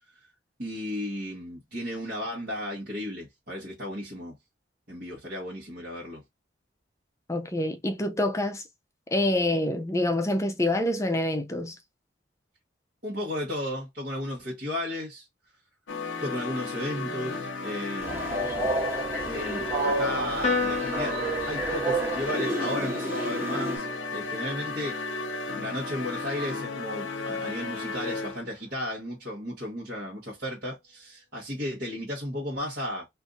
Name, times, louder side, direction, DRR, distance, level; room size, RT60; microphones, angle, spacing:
voice 1, 0.6-4.4 4.9-6.2 13.0-15.3 16.2-18.7 19.1-21.2 21.5-23.9 24.1-25.0 25.6-33.1, left 1 dB, 50° right, 1.1 m, -34 dB
voice 2, 7.3-8.6 9.1-11.8, left 1 dB, 15° left, 0.4 m, -26 dB
sound 1, 15.9-28.5, left 3 dB, 70° left, 0.6 m, -34 dB
Train, 18.0-23.8, right 2 dB, 10° right, 1.0 m, -30 dB
Piano, 20.4-27.1, left 3 dB, 35° left, 1.0 m, -35 dB
2.6 x 2.6 x 3.6 m
head